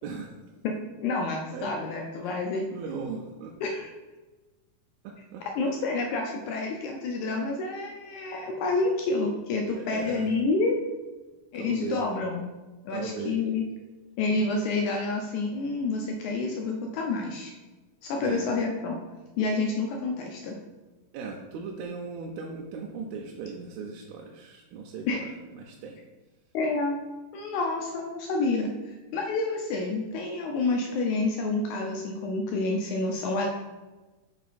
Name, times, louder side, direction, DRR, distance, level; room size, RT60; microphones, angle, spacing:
voice 1, 0.0-0.4 1.5-1.7 2.2-2.4 2.7-3.5 5.0-5.7 9.8-10.3 11.5-12.1 12.9-13.4 18.2-18.5 21.1-26.0, right 5 dB, 90° right, 0 dB, 2.4 m, -38 dB
voice 2, 0.6-2.7 3.6-3.9 5.6-10.8 11.5-12.5 12.9-13.6 14.2-17.5 18.0-19.0 19.4-20.6 25.1-25.2 26.5-27.0 27.3-33.5, left 3 dB, 80° left, 1 dB, 1.7 m, -28 dB
5.6 x 4.6 x 4.1 m, 1.2 s
omnidirectional pair, 4.1 m